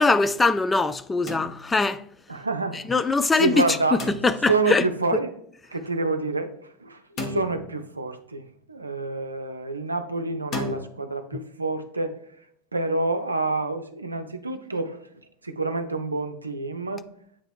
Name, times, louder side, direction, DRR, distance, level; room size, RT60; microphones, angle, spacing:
voice 1, 0.0-2.0 2.9-3.6 4.2-4.8, left 3 dB, 15° left, 0.4 m, -21 dB
sound 1, 1.3-2.0 4.0-4.7 7.2-8.1 10.5-10.9, left 2 dB, 35° left, 1.3 m, -34 dB
voice 2, 2.3-2.9 3.4-4.0 4.5-5.3 5.7-6.5 6.8-12.1 12.7-15.0 15.4-17.0, right 3 dB, 85° right, 0.6 m, -27 dB
8.6 x 3.0 x 4.7 m
figure-of-eight pair, 80°, 0 cm